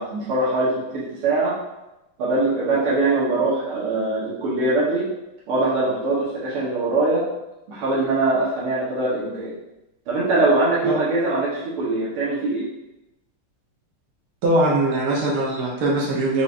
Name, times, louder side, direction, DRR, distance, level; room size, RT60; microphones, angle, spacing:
voice 1, 0.0-1.6 2.2-5.1 5.5-7.3 7.7-9.5 10.1-12.6, right 2 dB, 85° right, -8 dB, 2.0 m, -22 dB
voice 2, 14.4-16.4, right 1 dB, 60° right, -4 dB, 1.2 m, -21 dB
5.2 x 3.5 x 2.5 m, 0.94 s
omnidirectional pair, 2.4 m